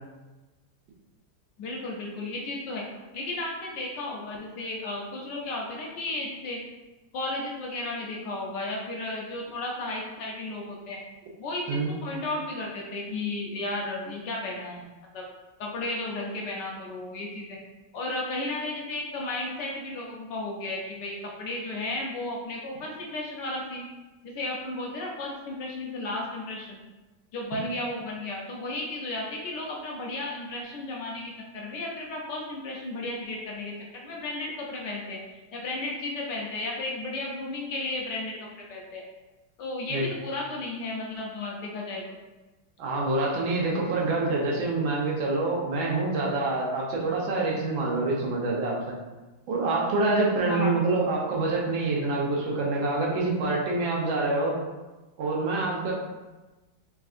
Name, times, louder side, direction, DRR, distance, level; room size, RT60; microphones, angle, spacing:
voice 1, 1.6-2.8 3.1-6.6 7.1-11.0 11.4-14.9 15.1-15.2 15.6-17.6 17.9-23.9 24.2-26.8 27.3-35.2 35.5-39.0 39.6-42.2 50.5-50.8, left 2 dB, 70° left, -1 dB, 1.2 m, -34 dB
voice 2, 42.8-48.9 49.5-54.6 55.2-55.9, right 3 dB, 75° right, -3 dB, 1.6 m, -26 dB
4.6 x 3.5 x 2.5 m, 1.1 s
omnidirectional pair, 2.2 m